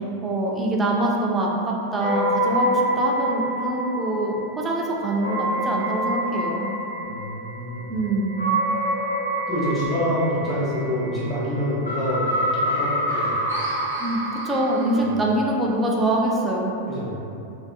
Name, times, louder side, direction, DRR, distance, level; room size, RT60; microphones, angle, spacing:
voice 1, 0.2-6.7 7.9-8.4 14.0-16.8, right 1 dB, 15° right, -2 dB, 0.4 m, -24 dB
sound 1, 2.0-15.0, right 1 dB, 80° left, 0.9 m, -27 dB
voice 2, 7.0-8.0 9.5-13.4 14.9-15.1 16.9-17.3, equal, 15° left, -10 dB, 1.1 m, -27 dB
3.4 x 2.5 x 2.3 m, 2.7 s
figure-of-eight pair, 90°, 0 cm